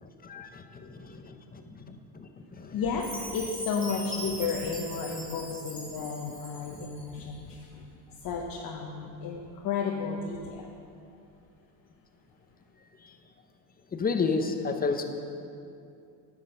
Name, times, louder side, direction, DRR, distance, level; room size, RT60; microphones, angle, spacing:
voice 1, 0.0-2.8 6.7-6.8 13.0-13.1 13.9-15.0, left 4 dB, 20° left, 6 dB, 0.7 m, -32 dB
voice 2, 2.7-10.7, left 5 dB, 45° left, 0 dB, 0.9 m, -33 dB
Chime, 3.0-7.1, right 1 dB, 15° right, 2.4 m, -41 dB
9.6 x 6.3 x 5.2 m, 2.5 s
supercardioid pair, 100°, 47 cm